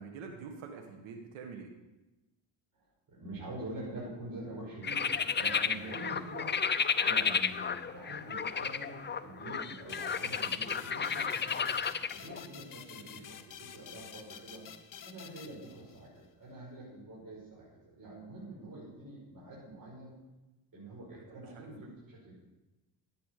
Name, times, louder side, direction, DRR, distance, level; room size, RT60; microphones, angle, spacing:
voice 1, 0.0-1.7 21.1-21.9, right 5 dB, 85° right, 3 dB, 1.8 m, -46 dB
voice 2, 2.7-6.5 7.0-11.8 12.1-14.6 15.0-20.1 20.7-22.3, right 1 dB, 45° right, -5 dB, 5.9 m, -46 dB
Scary screaming frogs, 4.8-12.4, left 6 dB, 25° left, 0.7 m, -32 dB
sound 1, 9.9-16.2, left 8 dB, 45° left, 1.2 m, -49 dB
14.0 x 9.5 x 6.7 m, 1.1 s
cardioid pair, 95°, 46 cm